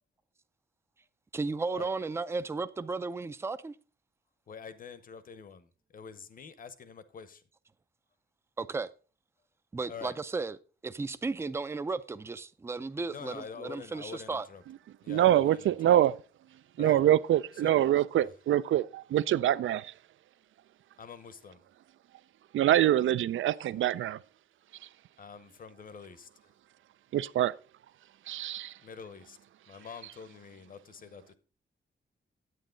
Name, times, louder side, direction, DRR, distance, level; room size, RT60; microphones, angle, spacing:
voice 1, 1.3-3.8 8.6-8.9 9.7-10.6 10.8-14.5, right 3 dB, 15° right, 0.4 m, -34 dB
voice 2, 4.5-7.4 9.9-10.1 13.1-14.6 15.0-16.0 16.8-17.0 17.5-17.7 18.2-18.3 21.0-21.6 25.2-26.5 28.8-29.4 29.7-31.3, left 6 dB, 45° left, 0.9 m, -46 dB
voice 3, 15.1-16.1 16.8-19.9 22.5-24.2 27.1-27.5 28.3-28.7, right 12 dB, 90° right, 0.4 m, -25 dB
9.4 x 8.8 x 3.8 m
wide cardioid pair, 170°, 20 cm